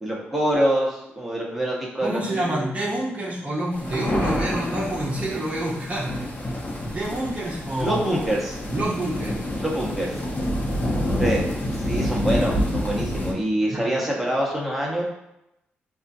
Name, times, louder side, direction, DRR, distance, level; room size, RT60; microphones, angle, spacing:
voice 1, 0.0-2.6 7.8-8.6 9.6-10.1 11.2-11.4 11.8-15.0, right 1 dB, ahead, -4 dB, 1.0 m, -25 dB
voice 2, 2.0-6.3 6.5-8.0 8.7-9.5 13.6-13.9, right 1 dB, 30° right, -5 dB, 0.7 m, -28 dB
sound 1, 3.7-13.3, left 1 dB, 40° left, 0.9 m, -27 dB
4.2 x 2.3 x 2.6 m, 0.86 s
cardioid pair, 65°, 4 cm